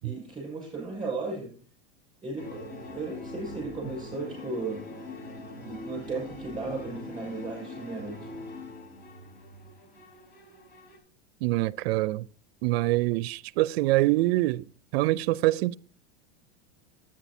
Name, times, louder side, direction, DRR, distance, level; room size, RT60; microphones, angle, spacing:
voice 1, 0.0-1.5 2.2-4.8 5.6-8.3, right 3 dB, 15° right, 6.4 m, -35 dB
sound 1, 2.4-11.0, left 2 dB, 80° left, 4.0 m, -42 dB
voice 2, 11.4-12.2 12.6-14.6 14.9-15.7, right 18 dB, 70° right, 0.5 m, -25 dB
10.0 x 8.7 x 4.2 m
supercardioid pair, 145°, 32 cm